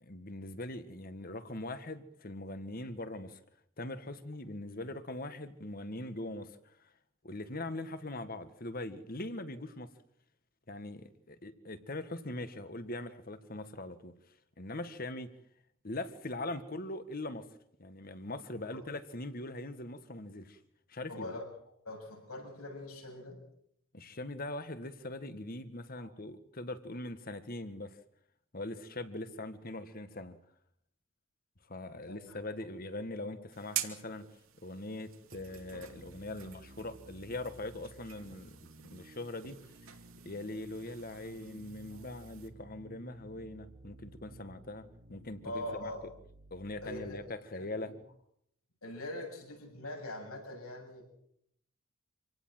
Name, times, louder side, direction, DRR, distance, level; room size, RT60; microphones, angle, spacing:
voice 1, 0.0-3.4 3.8-6.9 7.2-9.9 10.7-14.1 14.6-15.3 15.8-17.5 17.8-20.6 20.9-21.3 23.9-28.0 28.5-30.4 31.7-34.2 34.6-38.6 38.8-39.6 40.2-44.8 45.1-45.9 46.5-47.9, left 2 dB, 40° left, 11 dB, 1.7 m, -41 dB
voice 2, 21.1-21.4 21.8-23.4 26.0-26.1 32.0-32.4 41.9-42.0 45.4-46.0 46.8-47.2 47.5-47.9 48.8-51.1, left 1 dB, 80° left, 2 dB, 7.8 m, -42 dB
sound 1, 33.5-42.5, right 12 dB, 70° right, 2.6 m, -46 dB
sound 2, 35.3-47.3, right 1 dB, 45° right, 1.4 m, -55 dB
26.5 x 18.0 x 7.8 m, 0.71 s
head